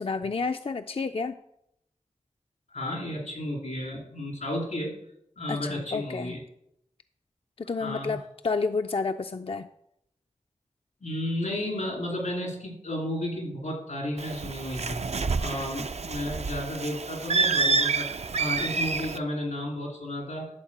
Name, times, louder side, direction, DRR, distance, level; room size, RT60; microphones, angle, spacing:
voice 1, 0.0-1.3 5.5-6.3 7.7-9.7, left 4 dB, 50° left, 7 dB, 0.4 m, -30 dB
voice 2, 2.7-5.0 5.4-6.4 7.8-8.2 11.0-18.1 18.3-20.5, left 1 dB, 90° left, -1 dB, 2.9 m, -33 dB
Bird, 14.2-19.2, right 4 dB, 65° right, 0.5 m, -28 dB
11.0 x 4.1 x 7.3 m, 0.78 s
wide cardioid pair, 50°, 12 cm